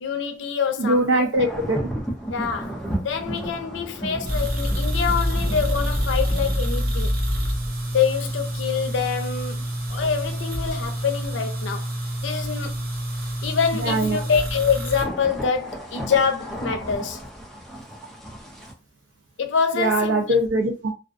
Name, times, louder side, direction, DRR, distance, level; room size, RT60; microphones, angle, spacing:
voice 1, 0.0-1.3 2.3-7.2 7.9-11.9 12.2-12.9 13.4-17.2 19.4-20.2, left 6 dB, 90° left, 0.5 m, -26 dB
voice 2, 0.8-1.8 13.8-14.2 19.7-20.9, right 1 dB, 90° right, 0.4 m, -21 dB
sound 1, 1.3-18.7, right 1 dB, ahead, 0.4 m, -36 dB
sound 2, 4.3-15.0, equal, 55° right, 0.7 m, -27 dB
2.3 x 2.2 x 2.4 m
head